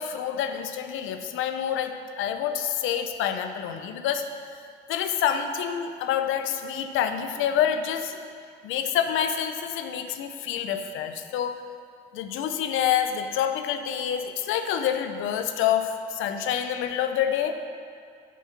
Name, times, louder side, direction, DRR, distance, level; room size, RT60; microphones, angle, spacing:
voice 1, 0.0-4.3 4.9-8.2 8.6-11.6 12.1-17.6, left 9 dB, 90° left, 8 dB, 0.5 m, -27 dB
6.9 x 4.8 x 5.9 m, 2.2 s
cardioid pair, 90°, 20 cm